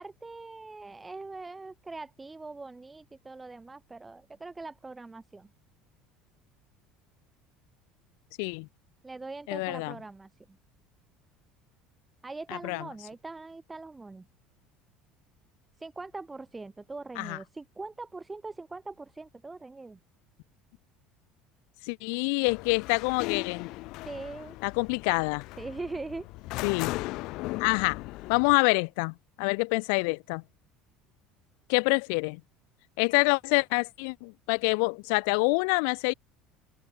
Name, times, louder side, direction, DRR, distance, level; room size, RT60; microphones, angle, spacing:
voice 1, 0.0-5.5 9.0-10.3 12.2-14.3 15.8-20.0 24.0-24.6 25.6-26.3, right 3 dB, 10° right, 0.7 m, -41 dB
voice 2, 9.5-9.9 12.5-12.9 17.2-17.4 21.8-23.7 24.6-25.4 26.6-27.0 27.6-28.0 28.3-30.4 31.7-32.4 33.0-36.1, left 37 dB, 80° left, 1.0 m, -26 dB
sound 1, 22.5-28.5, left 20 dB, 65° left, 0.5 m, -38 dB
open air
cardioid pair, 135°, 0 cm